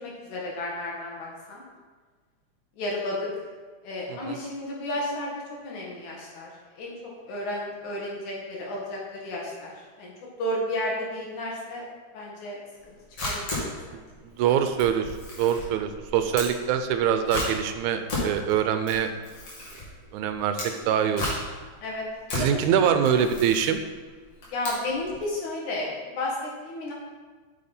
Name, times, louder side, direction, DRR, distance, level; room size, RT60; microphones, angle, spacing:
voice 1, 0.0-1.6 2.8-3.3 3.8-5.3 5.6-6.5 6.8-9.7 10.0-10.1 10.4-11.8 12.1-12.6 12.9-13.0 13.2-14.0 21.8-22.1 22.3-22.6 24.5-26.9, left 1 dB, 75° left, -3 dB, 3.2 m, -32 dB
Camera, 12.8-25.2, left 1 dB, 55° left, 3.4 m, -35 dB
voice 2, 13.9-19.1 20.1-21.3 22.3-23.8, right 8 dB, 80° right, 8 dB, 2.0 m, -24 dB
8.6 x 6.5 x 4.3 m, 1.4 s
omnidirectional pair, 3.5 m